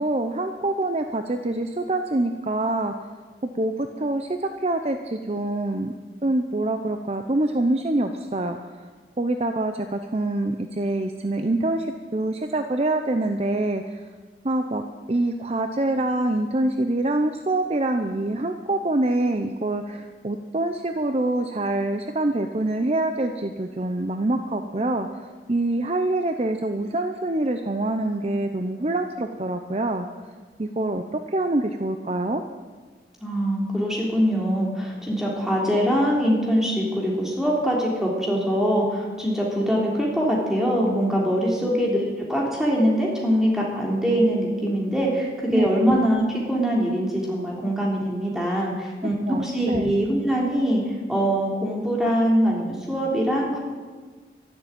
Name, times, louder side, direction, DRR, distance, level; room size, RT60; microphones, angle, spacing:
voice 1, 0.0-2.9 3.5-5.9 6.2-8.9 9.2-14.0 14.4-30.1 30.6-32.4 45.5-45.7 49.0-49.9, right 2 dB, 35° right, 7 dB, 0.7 m, -25 dB
voice 2, 33.2-42.0 42.3-53.6, equal, 5° right, -3 dB, 3.4 m, -23 dB
12.5 x 11.5 x 8.9 m, 1.4 s
head